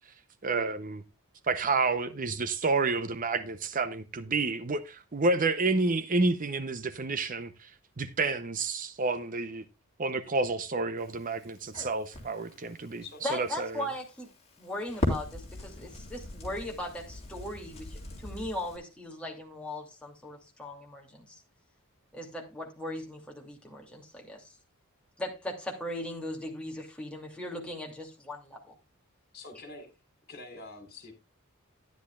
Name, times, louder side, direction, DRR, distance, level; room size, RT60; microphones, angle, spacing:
voice 1, 0.4-1.0 1.5-7.7 8.0-9.6 10.0-13.9, right 3 dB, 40° right, 0.7 m, -29 dB
Crackle, 11.0-18.8, left 1 dB, 30° left, 3.4 m, -39 dB
voice 2, 13.2-14.3 14.6-21.4 22.1-24.5 25.2-28.6, left 1 dB, 5° left, 2.6 m, -38 dB
voice 3, 29.3-29.9 30.3-31.1, left 3 dB, 50° left, 3.5 m, -45 dB
13.0 x 10.5 x 2.4 m
head